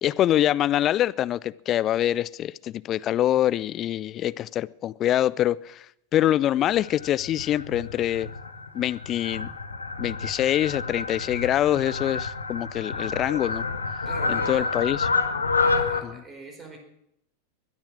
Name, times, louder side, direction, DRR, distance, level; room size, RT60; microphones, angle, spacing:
voice 1, 0.0-5.8 6.1-8.3 8.7-9.5 10.0-13.6 14.3-15.1 16.0-16.1, left 12 dB, 30° left, 0.5 m, -24 dB
Fowl, 6.6-16.0, left 4 dB, 75° left, 1.3 m, -29 dB
voice 2, 14.0-14.8 15.6-16.8, right 3 dB, 20° right, 4.7 m, -42 dB
21.5 x 10.5 x 6.3 m
figure-of-eight pair, 90°, 0 cm